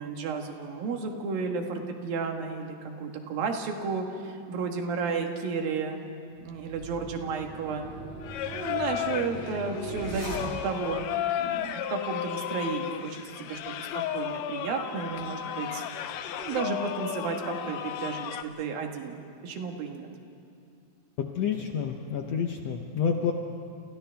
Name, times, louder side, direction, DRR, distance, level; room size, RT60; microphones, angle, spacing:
voice 1, 0.0-6.0 6.4-7.9 8.5-11.1 11.4-20.1, right 5 dB, 80° right, 3 dB, 3.3 m, -33 dB
sound 1, 6.3-10.9, right 1 dB, 65° right, 8.7 m, -39 dB
Singing, 8.2-18.4, left 10 dB, 90° left, 1.5 m, -34 dB
voice 2, 21.2-23.3, left 7 dB, 70° left, 3 dB, 1.6 m, -29 dB
29.5 x 28.5 x 3.4 m, 2.6 s
omnidirectional pair, 4.1 m